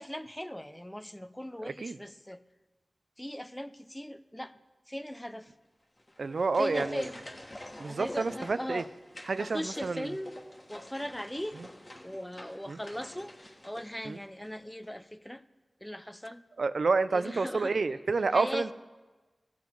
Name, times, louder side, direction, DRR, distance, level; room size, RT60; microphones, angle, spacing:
voice 1, 0.0-2.4 3.2-4.5 4.9-5.5 6.6-7.2 7.8-8.9 9.3-10.4 10.7-11.6 12.0-15.4 15.8-16.4 17.1-17.7 18.3-18.7, equal, 10° left, 13 dB, 0.5 m, -38 dB
voice 2, 1.6-2.0 6.2-7.1 7.8-8.8 9.3-10.1 11.6-11.7 12.7-12.8 14.0-14.2 16.6-18.7, right 4 dB, 75° right, 13 dB, 0.4 m, -29 dB
sound 1, 6.0-14.6 14.8-14.9, left 1 dB, 25° left, 1.4 m, -47 dB
16.5 x 7.1 x 4.6 m, 1.2 s
wide cardioid pair, 65°, 0 cm